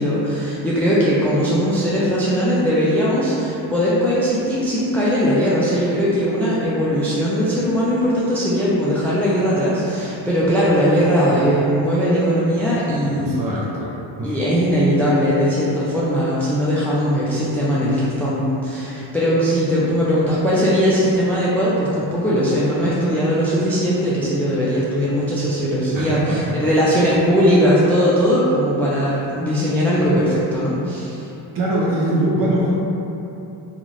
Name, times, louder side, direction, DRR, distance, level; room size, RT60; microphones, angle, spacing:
voice 1, 0.0-13.5 14.2-31.3, equal, 5° left, -8 dB, 0.4 m, -19 dB
voice 2, 13.2-13.9 14.2-14.3 25.9-26.8 31.5-32.7, right 1 dB, 45° right, -6 dB, 0.7 m, -22 dB
2.5 x 2.4 x 3.1 m, 3.0 s
cardioid pair, 65°, 46 cm